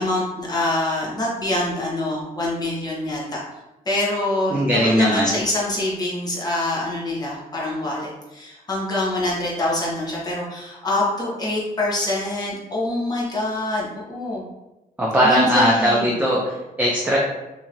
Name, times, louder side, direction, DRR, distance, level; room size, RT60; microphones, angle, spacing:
voice 1, 0.0-3.4 3.9-14.4 15.2-16.1, left 1 dB, 25° left, -5 dB, 1.0 m, -25 dB
voice 2, 4.5-5.3 15.0-17.2, equal, 10° right, -5 dB, 0.6 m, -19 dB
2.9 x 2.9 x 2.5 m, 1.0 s
cardioid pair, 100°, 16 cm